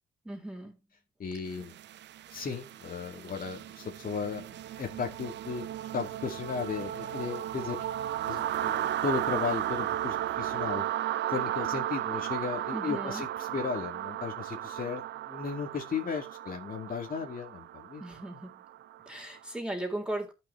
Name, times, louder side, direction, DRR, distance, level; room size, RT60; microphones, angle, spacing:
voice 1, 0.2-0.8 12.7-13.2 18.0-18.6 19.1-20.3, right 1 dB, 5° right, 3.8 m, -37 dB
voice 2, 1.2-1.8 2.3-5.6 5.9-7.8 8.3-10.8 11.3-15.0 15.3-18.0, left 5 dB, 45° left, 2.3 m, -35 dB
sound 1, 1.6-19.4, right 12 dB, 60° right, 0.5 m, -35 dB
14.0 x 6.2 x 3.2 m
cardioid pair, 90°, 20 cm